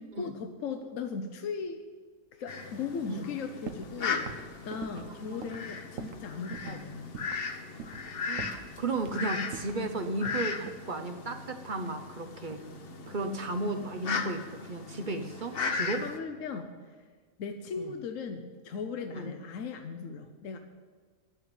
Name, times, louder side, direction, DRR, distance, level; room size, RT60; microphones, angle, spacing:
voice 1, 0.0-1.8 2.3-7.2 15.8-16.9 17.4-20.6, left 5 dB, 70° left, 6 dB, 1.1 m, -38 dB
Fowl, 2.5-16.2, left 5 dB, 50° left, 1.0 m, -37 dB
sound 1, 3.7-4.0 4.3-6.3 6.5-6.8 7.1-7.5 7.8-8.1 8.4-9.2 9.5-10.9 11.8-12.7 13.0-13.5, right 5 dB, 70° right, 1.2 m, -44 dB
voice 2, 8.2-12.6 13.1-16.0 17.8-17.9 19.1-19.3, right 2 dB, 40° right, 6 dB, 0.8 m, -34 dB
11.0 x 8.0 x 9.3 m, 1.5 s
omnidirectional pair, 1.4 m